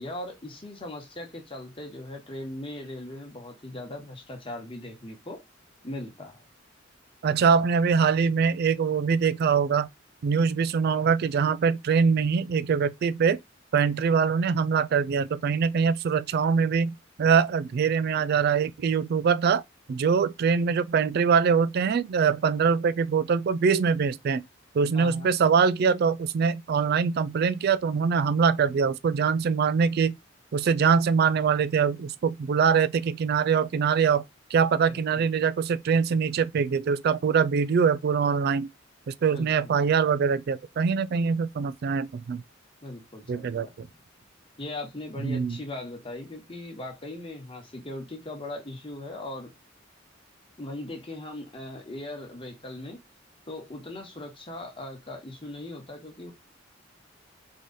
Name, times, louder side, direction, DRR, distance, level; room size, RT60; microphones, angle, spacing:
voice 1, 0.0-5.4 5.8-6.5 24.9-25.3 34.9-35.2 39.3-39.8 42.8-43.7 44.6-49.5 50.6-53.0 53.5-56.3, left 1 dB, 30° left, 1.3 m, -39 dB
voice 2, 7.2-9.9 10.2-13.4 13.7-19.6 19.9-24.4 24.7-30.2 30.5-34.2 34.5-38.7 39.1-42.4 43.3-43.9 45.2-45.6, right 6 dB, 55° right, 0.3 m, -23 dB
3.8 x 3.1 x 4.0 m
head